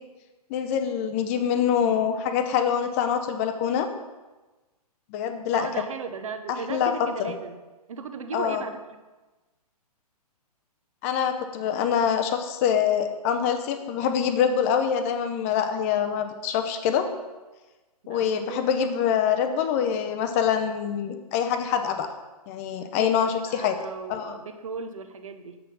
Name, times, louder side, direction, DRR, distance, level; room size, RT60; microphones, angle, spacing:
voice 1, 0.5-3.9 5.1-5.7 6.5-6.9 7.2-7.3 8.3-8.6 11.0-17.1 18.1-22.1 22.5-23.8 24.1-24.4, left 8 dB, 20° left, 8 dB, 0.5 m, -25 dB
voice 2, 5.5-7.6 7.9-8.8 18.1-18.6 23.0-25.6, right 5 dB, 55° right, 8 dB, 0.8 m, -36 dB
7.6 x 5.8 x 5.3 m, 1.2 s
figure-of-eight pair, 125°, 20 cm